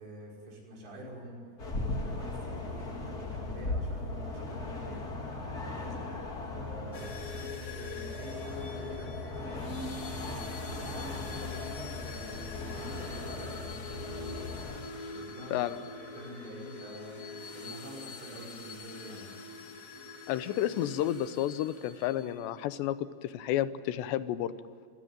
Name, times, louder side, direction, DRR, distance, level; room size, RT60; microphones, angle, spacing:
voice 1, 0.0-1.4 1.8-5.3 5.5-6.1 6.5-9.8 10.3-14.4 15.0-15.7 16.0-17.2 17.5-19.3, equal, 75° right, -1 dB, 8.1 m, -46 dB
sound 1, 1.6-14.8, left 2 dB, 25° left, 2.9 m, -38 dB
sound 2, 6.9-22.6, left 3 dB, 55° left, 0.9 m, -44 dB
voice 2, 15.5-15.8 20.3-24.5, left 12 dB, 80° left, 14 dB, 3.0 m, -31 dB
27.0 x 16.5 x 9.5 m, 2.5 s
omnidirectional pair, 5.0 m